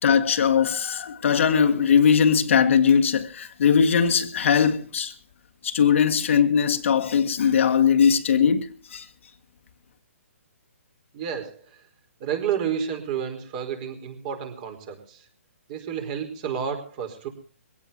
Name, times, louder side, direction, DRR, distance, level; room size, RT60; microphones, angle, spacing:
voice 1, 0.0-5.1 5.6-9.1, left 7 dB, 60° left, 1.7 m, -20 dB
voice 2, 11.1-11.7 12.2-15.2 15.7-17.3, right 8 dB, 35° right, 4.7 m, -30 dB
22.5 x 17.5 x 2.9 m
hypercardioid pair, 150°, 8 cm